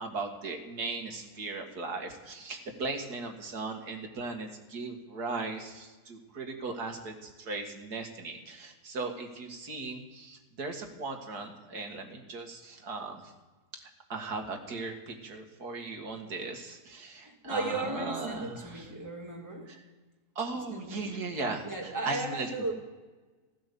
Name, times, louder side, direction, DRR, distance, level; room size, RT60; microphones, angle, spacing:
voice 1, 0.0-13.3 14.1-18.9 19.7-19.8 20.4-22.5, right 3 dB, 75° right, 4 dB, 2.3 m, -38 dB
voice 2, 17.2-19.7 20.7-21.2 21.6-22.7, right 2 dB, 10° right, 1 dB, 2.3 m, -36 dB
15.5 x 13.0 x 6.9 m, 1.2 s
omnidirectional pair, 1.7 m